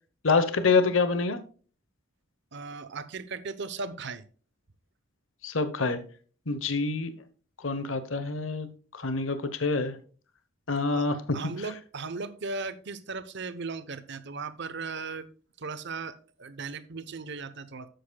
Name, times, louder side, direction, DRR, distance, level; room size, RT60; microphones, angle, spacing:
voice 1, 0.2-1.4 5.4-6.0 6.5-7.1 7.6-8.7 8.9-10.0 10.7-11.1, left 4 dB, 75° left, 1.0 m, -26 dB
voice 2, 2.5-4.3 10.9-11.1 11.3-15.3 15.6-17.9, right 4 dB, 60° right, 0.9 m, -37 dB
11.5 x 7.8 x 2.3 m
head